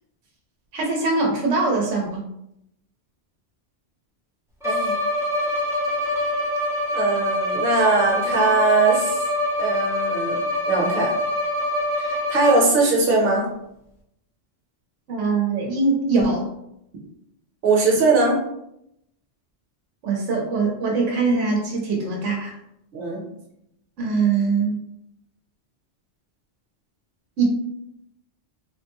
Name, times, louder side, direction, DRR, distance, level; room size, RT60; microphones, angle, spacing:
voice 1, 0.7-2.3 15.1-16.5 20.0-22.5 24.0-24.8 27.4-27.5, right 4 dB, 85° right, -1 dB, 1.0 m, -22 dB
Bowed string instrument, 4.6-12.9, left 1 dB, 5° right, 0.5 m, -25 dB
voice 2, 4.6-5.0 6.9-9.2 9.6-10.4 10.6-11.1 12.0-13.5 17.6-18.4 22.9-23.2, right 3 dB, 55° right, -3 dB, 1.1 m, -20 dB
3.7 x 2.1 x 3.0 m, 0.79 s
omnidirectional pair, 1.2 m